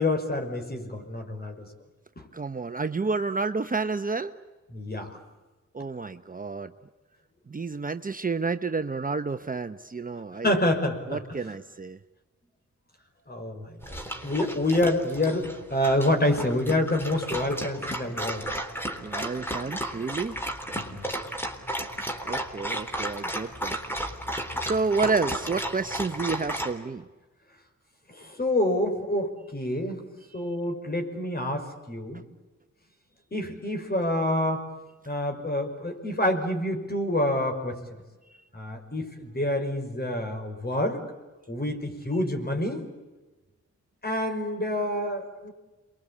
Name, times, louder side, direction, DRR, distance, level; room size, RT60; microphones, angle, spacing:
voice 1, 0.0-1.7 2.2-2.3 4.7-5.1 10.4-11.2 13.3-13.9 14.2-18.5 20.7-21.3 28.1-30.0 30.3-32.2 33.3-34.7 35.1-37.8 38.5-41.0 41.5-42.8 44.0-45.5, left 1 dB, 30° left, 5 dB, 5.8 m, -27 dB
voice 2, 2.3-4.3 5.7-6.7 7.5-10.5 11.1-12.0 19.0-20.4 22.2-23.8 24.6-27.1 30.3-30.4, right 4 dB, 30° right, 9 dB, 1.0 m, -30 dB
Dog, 13.8-26.7, right 1 dB, 5° left, 3.7 m, -34 dB
28.5 x 22.5 x 8.7 m, 1.2 s
cardioid pair, 80°, 30 cm